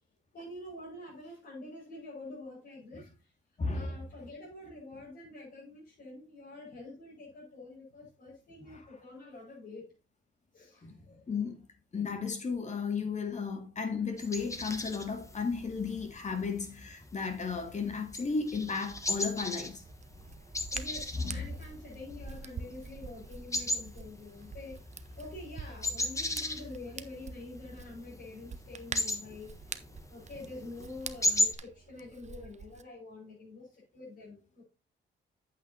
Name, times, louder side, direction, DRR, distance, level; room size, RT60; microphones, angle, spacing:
voice 1, 0.3-3.3 3.7-9.9 10.5-11.2 16.2-16.4 20.7-24.8 25.2-29.5 30.1-34.6, left 2 dB, 55° left, 5.7 m, -47 dB
voice 2, 3.6-4.0 8.7-8.9 10.8-11.0 11.3-11.6 11.9-19.8 21.2-21.5, left 5 dB, 35° left, 2.2 m, -34 dB
sound 1, 14.2-31.5, left 1 dB, 15° left, 1.3 m, -37 dB
Hands, 18.8-32.8, right 5 dB, 35° right, 0.8 m, -47 dB
8.6 x 8.4 x 2.8 m
cardioid pair, 90°, 20 cm